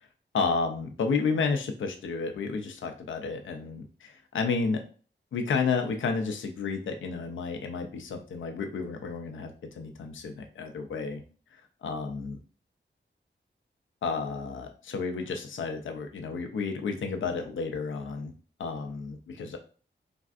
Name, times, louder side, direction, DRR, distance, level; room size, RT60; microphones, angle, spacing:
voice 1, 0.3-4.8 5.3-9.5 9.8-11.2 11.5-12.4 14.0-18.3 18.6-19.6, left 4 dB, 80° left, 5 dB, 0.4 m, -31 dB
3.3 x 2.4 x 2.3 m, 0.39 s
wide cardioid pair, 65°, 20 cm